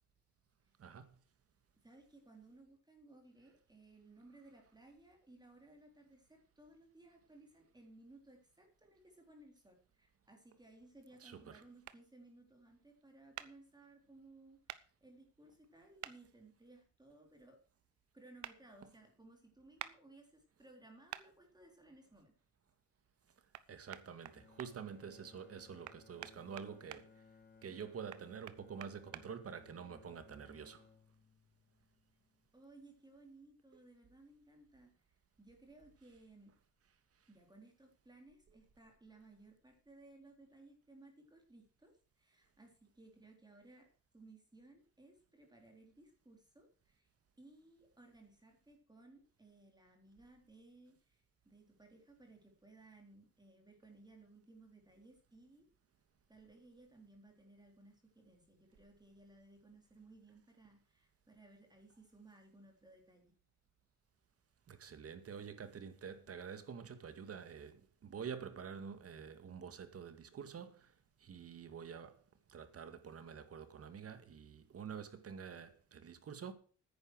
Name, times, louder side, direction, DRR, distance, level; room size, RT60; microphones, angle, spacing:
voice 1, 1.8-17.6 18.1-22.3 32.5-36.6 37.3-43.9 44.1-47.1 47.4-55.7 56.3-63.3, right 2 dB, 15° right, 3.8 m, -61 dB
voice 2, 11.2-11.6 23.7-27.1 27.6-30.8 64.7-70.9 71.2-72.2 72.5-76.5, right 7 dB, 50° right, 2.0 m, -48 dB
sound 1, 11.8-12.0 13.4-13.5 14.7-14.8 16.0-16.2 18.4-18.6 19.8-19.9 21.1-21.3 23.5-23.6 23.9-24.7 25.8-27.0 28.1-29.2, right 12 dB, 70° right, 1.0 m, -47 dB
Bowed string instrument, 24.2-32.5, left 5 dB, 30° left, 1.9 m, -63 dB
9.9 x 9.8 x 6.4 m
cardioid pair, 90°, 30 cm